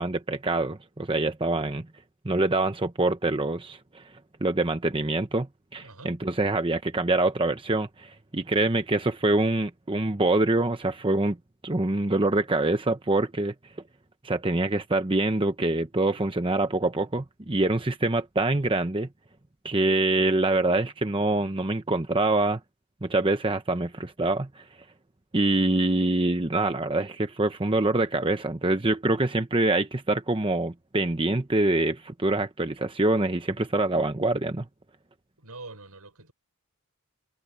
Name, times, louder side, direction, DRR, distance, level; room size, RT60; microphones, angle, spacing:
voice 1, 0.0-1.9 2.2-4.0 4.4-5.5 5.7-11.4 11.6-13.5 14.2-19.1 19.6-22.6 23.0-24.6 25.3-34.6, right 2 dB, 25° right, 0.9 m, -25 dB
voice 2, 5.8-6.1 35.4-36.3, right 3 dB, 80° right, 7.2 m, -44 dB
head